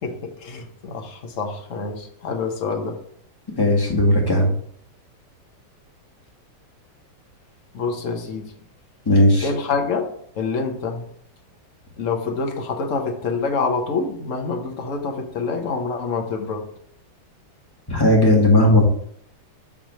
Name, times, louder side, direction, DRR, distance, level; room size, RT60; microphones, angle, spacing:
voice 1, 0.0-3.0 7.7-8.5 9.4-11.1 12.0-16.7, left 4 dB, 50° left, 1.1 m, -26 dB
voice 2, 3.5-4.5 9.0-9.5 17.9-18.8, left 1 dB, 10° left, 1.5 m, -16 dB
7.3 x 3.3 x 6.2 m
omnidirectional pair, 2.2 m